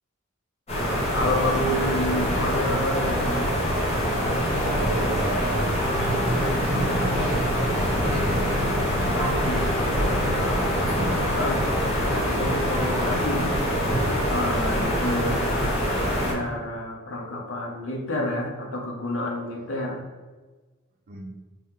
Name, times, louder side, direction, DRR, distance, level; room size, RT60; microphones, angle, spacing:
sound 1, 0.7-16.3, equal, 30° left, 1.0 m, -24 dB
voice 1, 1.1-3.5 9.1-10.7 11.3-11.7 12.1-13.5 14.3-15.8 16.3-20.0, left 1 dB, 65° left, 0 dB, 0.7 m, -29 dB
voice 2, 4.6-8.4 21.1-21.4, right 2 dB, 40° right, 2 dB, 0.4 m, -36 dB
3.0 x 2.7 x 3.6 m, 1.3 s
head